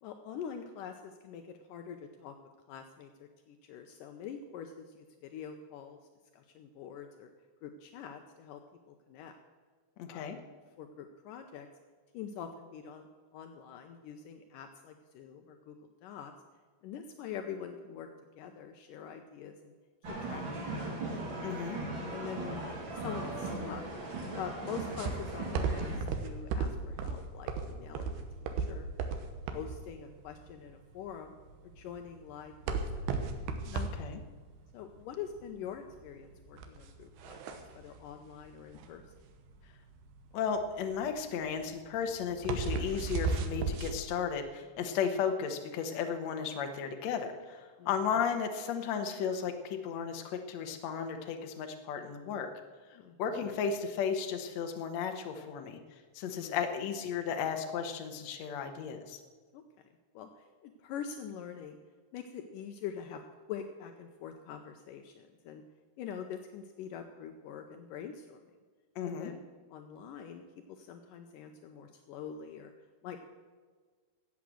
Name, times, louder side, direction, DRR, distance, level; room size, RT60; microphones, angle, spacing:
voice 1, 0.0-2.4 2.7-6.0 6.3-7.3 7.6-8.6 8.9-9.4 10.1-10.3 10.8-11.7 12.1-13.1 13.3-15.8 16.0-16.3 16.8-18.1 18.4-19.7 20.1-20.4 20.7-21.0 21.7-21.8 22.1-22.6 23.0-23.8 24.3-28.9 29.5-31.3 31.6-33.0 34.7-39.0 47.8-47.9 52.9-53.2 56.3-56.6 59.5-59.6 60.1-61.8 62.1-63.2 63.5-65.6 66.0-68.4 69.0-69.4 69.7-70.4 70.7-72.7 73.0-73.2, left 8 dB, 85° left, 6 dB, 1.9 m, -44 dB
voice 2, 10.0-10.4 21.4-21.8 33.7-34.2 40.3-52.5 53.2-55.8 56.1-59.2 68.9-69.3, left 7 dB, 70° left, 5 dB, 1.7 m, -34 dB
sound 1, 20.0-26.0, right 2 dB, 40° right, 2.2 m, -38 dB
sound 2, 25.0-43.9, right 4 dB, 85° right, 3.1 m, -36 dB
13.5 x 8.5 x 7.6 m, 1.5 s
omnidirectional pair, 4.7 m